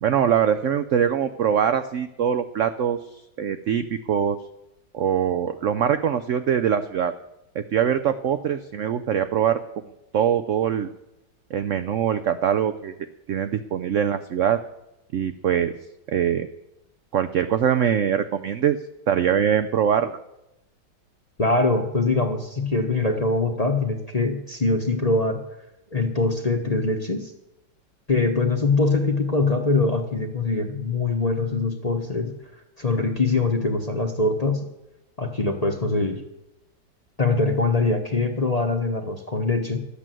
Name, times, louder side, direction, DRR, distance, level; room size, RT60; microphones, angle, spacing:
voice 1, 0.0-3.0 3.4-4.4 4.9-7.1 7.5-9.6 10.1-10.9 11.5-12.9 13.3-14.6 15.1-15.7 16.1-16.5 17.1-18.8 19.1-20.2, right 8 dB, 70° right, 10 dB, 0.7 m, -23 dB
voice 2, 21.4-25.4 25.9-27.3 28.1-32.4 32.8-34.6 35.2-36.2 37.2-39.8, left 3 dB, 30° left, 4 dB, 0.8 m, -23 dB
12.5 x 8.4 x 7.6 m, 0.90 s
omnidirectional pair, 2.0 m